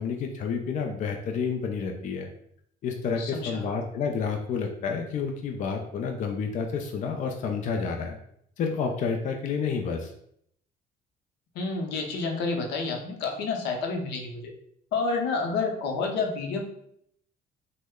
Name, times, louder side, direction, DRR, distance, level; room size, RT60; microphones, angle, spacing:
voice 1, 0.0-2.3 2.8-8.2 8.6-10.1, left 5 dB, 50° left, 3 dB, 0.4 m, -30 dB
voice 2, 3.2-3.6 11.5-14.5 14.9-16.6, left 4 dB, 85° left, 2 dB, 0.7 m, -29 dB
3.1 x 2.1 x 3.5 m, 0.70 s
cardioid pair, 110°, 17 cm